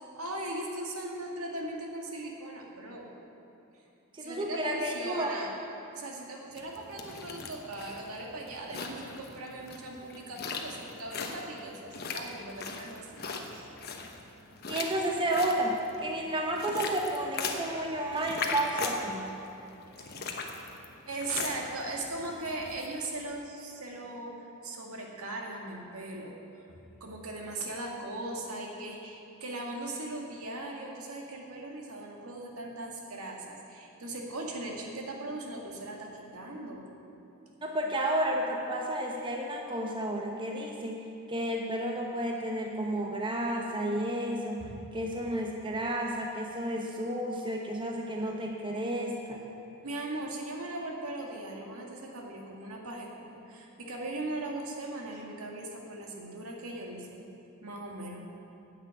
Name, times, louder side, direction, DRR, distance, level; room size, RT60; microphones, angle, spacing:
voice 1, 0.2-3.1 4.2-5.5 5.9-13.1 13.5-13.7 20.0-20.1 21.1-26.4 26.7-36.8 44.6-44.8 49.8-57.3 57.6-58.3, right 2 dB, 75° right, 0 dB, 1.9 m, -39 dB
voice 2, 4.1-5.3 14.7-19.2 37.6-41.0 41.3-44.6 44.9-49.4, right 1 dB, 20° right, 0 dB, 1.0 m, -31 dB
sound 1, 6.6-22.9, left 4 dB, 45° left, 1.1 m, -40 dB
10.0 x 8.0 x 8.8 m, 2.9 s
head